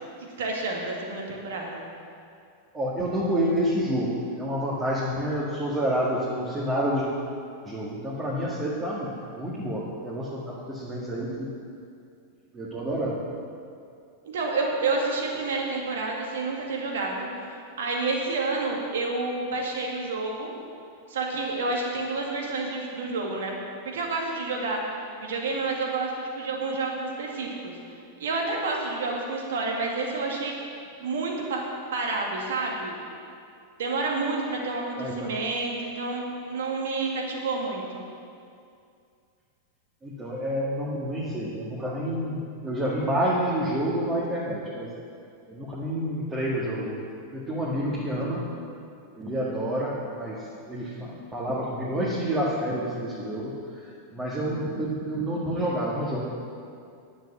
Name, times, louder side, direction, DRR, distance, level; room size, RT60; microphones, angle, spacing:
voice 1, 0.4-1.8 14.2-17.3 17.8-20.5 21.1-23.5 23.9-27.7 28.2-30.5 31.0-31.6 31.9-33.0 33.8-38.0, right 3 dB, 60° right, -1 dB, 2.2 m, -29 dB
voice 2, 2.7-7.1 7.6-9.1 9.4-11.5 12.5-13.2 35.0-35.3 40.0-44.9 45.5-47.0 47.3-48.4 49.2-53.5 53.8-56.2, equal, 15° right, -6 dB, 1.9 m, -28 dB
10.5 x 7.7 x 7.4 m, 2.4 s
figure-of-eight pair, 90°, 0 cm